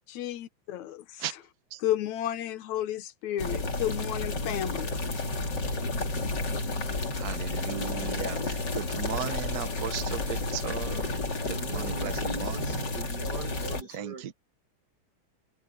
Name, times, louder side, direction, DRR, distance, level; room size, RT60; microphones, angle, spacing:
voice 1, 0.1-1.0 1.8-5.0, left 12 dB, 70° left, 2.3 m, -32 dB
sound 1, 3.4-13.8, left 2 dB, 35° left, 3.3 m, -31 dB
voice 2, 6.8-11.2 11.4-12.9 13.9-14.3, right 9 dB, 75° right, 0.8 m, -37 dB
voice 3, 11.4-14.3, right 4 dB, 50° right, 1.4 m, -41 dB
omnidirectional pair, 3.5 m